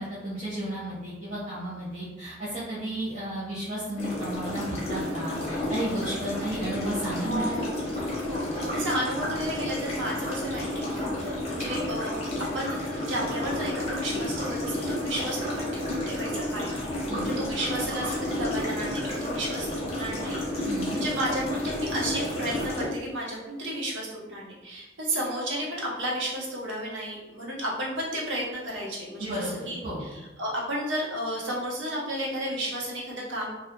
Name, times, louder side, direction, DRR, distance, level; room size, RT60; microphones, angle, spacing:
voice 1, 0.0-7.6 17.1-17.4 20.6-21.0 29.2-30.0, right 1 dB, 40° right, -10 dB, 0.5 m, -33 dB
sound 1, 4.0-22.8, left 1 dB, 35° left, 0.6 m, -31 dB
voice 2, 7.2-7.9 8.2-12.2 12.5-16.7 17.2-33.5, equal, 80° right, -4 dB, 0.7 m, -33 dB
2.3 x 2.0 x 2.8 m, 1.1 s
head